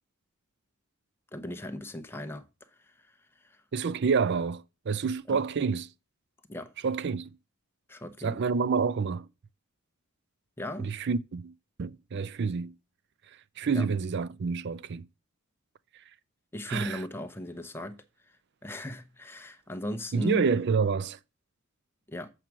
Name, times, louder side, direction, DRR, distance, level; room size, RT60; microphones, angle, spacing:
voice 1, 1.3-2.4 2.8-3.1 3.4-3.6 5.3-5.4 6.5-6.7 7.9-8.4 10.6-10.9 13.7-13.8 16.5-18.0 18.6-20.5 22.1-22.3, left 1 dB, 10° left, 0.8 m, -37 dB
voice 2, 3.7-5.9 6.8-7.4 8.2-9.3 10.8-12.7 13.2-15.1 15.9-16.0 16.7-17.0 20.1-21.2, right 5 dB, 55° right, 0.4 m, -28 dB
7.4 x 4.7 x 6.0 m
head